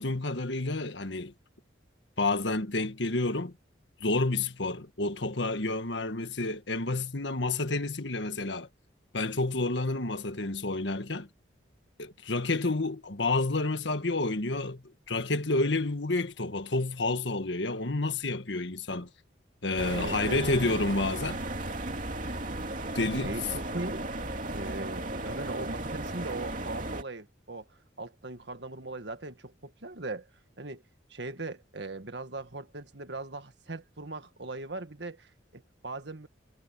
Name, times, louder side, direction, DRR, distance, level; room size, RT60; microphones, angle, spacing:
voice 1, 0.0-1.3 2.2-3.5 4.0-8.7 9.1-11.3 12.0-19.1 19.6-21.4 22.9-23.3, left 2 dB, 70° left, 1.6 m, -29 dB
sound 1, 19.8-27.0, right 1 dB, 45° right, 2.8 m, -35 dB
voice 2, 19.9-20.4 23.2-24.0 24.5-30.3 30.6-30.8 31.1-36.3, right 2 dB, 65° right, 1.8 m, -39 dB
head